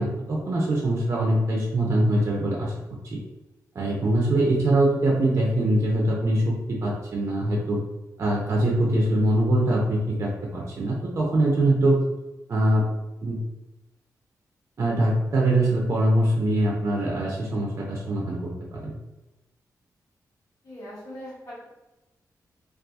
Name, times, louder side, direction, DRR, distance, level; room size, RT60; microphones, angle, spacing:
voice 1, 0.0-2.7 3.0-3.2 3.8-7.8 8.2-12.0 12.5-12.9 13.2-13.4 14.8-18.9, right 1 dB, 45° right, -2 dB, 0.4 m, -23 dB
voice 2, 20.6-21.6, equal, 70° left, -8 dB, 1.3 m, -40 dB
2.7 x 2.3 x 2.3 m, 1.0 s
wide cardioid pair, 135°, 7 cm